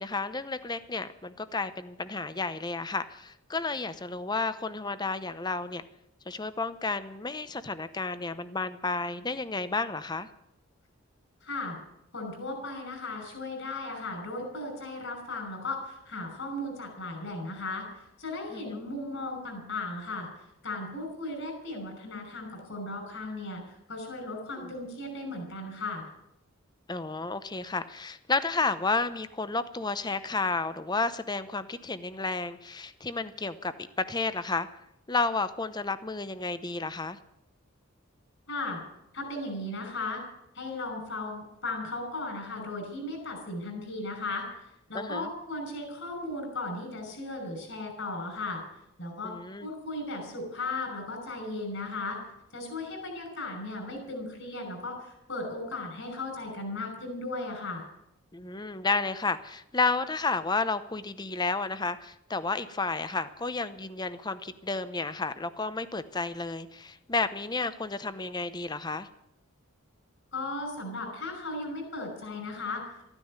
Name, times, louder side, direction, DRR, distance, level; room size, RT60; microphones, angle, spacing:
voice 1, 0.0-5.8 6.3-10.3 18.5-18.9 24.6-24.7 26.9-34.7 35.1-37.2 44.9-45.3 49.2-49.7 58.3-69.1, left 3 dB, 20° left, 13 dB, 0.8 m, -31 dB
voice 2, 11.4-11.8 12.1-17.9 18.2-20.3 20.6-26.1 38.5-38.8 39.1-40.2 40.5-44.5 44.9-48.6 49.0-49.3 49.6-52.2 52.5-57.8 70.3-72.8, left 2 dB, 60° left, 4 dB, 5.8 m, -36 dB
14.0 x 9.9 x 9.6 m, 0.81 s
head